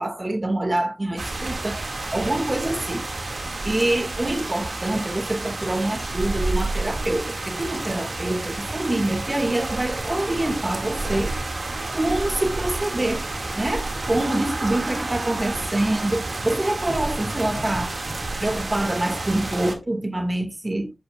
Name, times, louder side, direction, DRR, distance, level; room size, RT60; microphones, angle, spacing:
voice 1, 0.0-1.9 2.1-3.0 3.6-11.3 11.9-13.3 13.5-18.0 18.4-20.9, right 1 dB, 35° right, 2.0 m, -25 dB
sound 1, 1.2-19.8, right 2 dB, 65° right, 2.2 m, -30 dB
9.0 x 8.8 x 2.5 m
wide cardioid pair, 60°, 0 cm